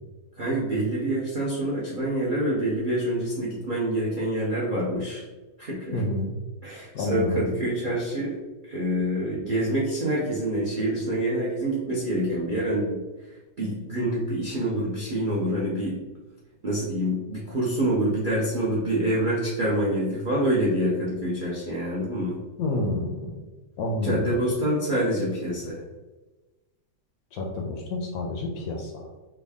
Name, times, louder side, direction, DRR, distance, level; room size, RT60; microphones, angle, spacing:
voice 1, 0.4-5.3 5.6-6.1 6.6-8.4 8.6-13.0 13.3-16.0 16.6-22.4 24.0-25.8, right 1 dB, 55° right, -6 dB, 0.5 m, -26 dB
voice 2, 5.9-6.3 6.9-7.5 22.6-23.4 23.8-24.4 27.3-29.1, left 2 dB, 70° left, 1 dB, 1.0 m, -29 dB
3.5 x 2.2 x 3.4 m, 1.2 s
omnidirectional pair, 1.8 m